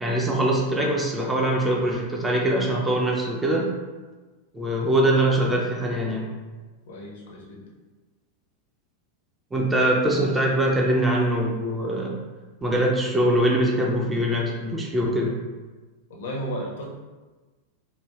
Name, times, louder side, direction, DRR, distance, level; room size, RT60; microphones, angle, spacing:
voice 1, 0.0-3.7 4.5-6.3 9.5-12.2 12.6-15.4, right 1 dB, 10° right, -1 dB, 0.4 m, -23 dB
voice 2, 6.9-7.6 16.1-16.8, equal, 60° left, -1 dB, 0.6 m, -33 dB
3.1 x 2.1 x 2.3 m, 1.3 s
figure-of-eight pair, 90°, 0 cm